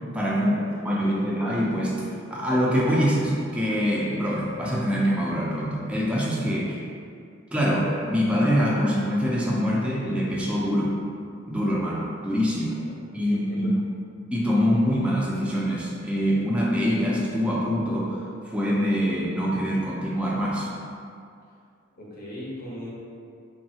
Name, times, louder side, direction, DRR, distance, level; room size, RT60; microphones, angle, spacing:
voice 1, 0.1-0.6 0.8-6.8 7.5-11.0 11.5-12.7 13.1-13.7 14.3-20.7, equal, 5° right, -5 dB, 0.4 m, -24 dB
voice 2, 1.0-1.3 12.9-13.7 21.9-22.9, left 1 dB, 50° left, -5 dB, 0.7 m, -40 dB
3.1 x 2.3 x 2.7 m, 2.3 s
head